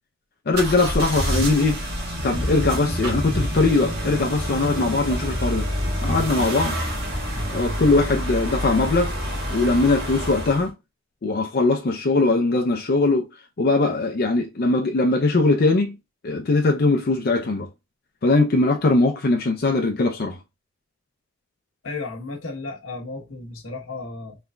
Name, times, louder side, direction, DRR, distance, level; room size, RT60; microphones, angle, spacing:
voice 1, 0.5-1.8 2.2-5.7 6.0-6.8 7.5-9.1 9.5-10.7 11.2-13.3 13.6-16.0 16.2-17.7 18.2-20.4, left 3 dB, 50° left, 0.5 m, -20 dB
sound 1, 0.5-10.7, equal, 55° right, 1.6 m, -27 dB
voice 2, 21.8-24.4, left 3 dB, 85° left, 1.0 m, -34 dB
3.8 x 3.2 x 2.2 m
head